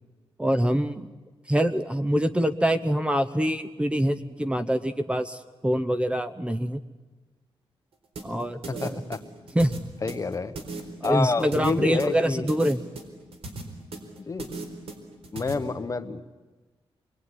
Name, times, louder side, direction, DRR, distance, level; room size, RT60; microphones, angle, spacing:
voice 1, 0.4-1.1 1.5-6.8 8.2-9.0 9.5-9.7 11.0-12.8, equal, 10° right, 9 dB, 0.8 m, -25 dB
sound 1, 8.2-15.5, right 3 dB, 85° right, 4.3 m, -37 dB
voice 2, 8.7-9.2 10.0-10.5 11.0-12.5 14.2-14.5 15.3-16.2, left 4 dB, 35° left, 9 dB, 1.3 m, -28 dB
28.0 x 21.5 x 9.9 m, 1.3 s
wide cardioid pair, 140°, 10 cm